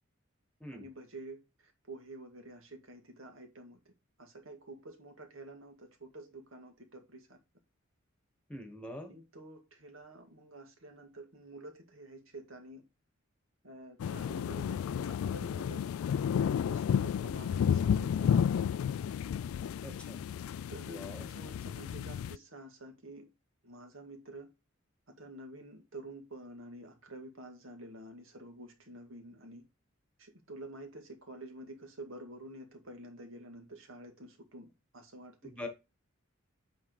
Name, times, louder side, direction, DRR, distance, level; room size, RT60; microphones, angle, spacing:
voice 1, 0.7-3.8 4.2-7.4 9.1-12.8 13.6-15.8 16.6-18.6 20.7-23.3 23.6-24.5 25.2-29.7 30.2-35.5, right 1 dB, 75° right, 2.0 m, -49 dB
voice 2, 8.5-9.1 19.8-20.2 20.9-21.3 35.4-35.7, left 1 dB, 5° left, 1.5 m, -43 dB
sound 1, 14.0-22.4, left 8 dB, 85° left, 0.3 m, -32 dB
8.7 x 3.7 x 4.9 m
head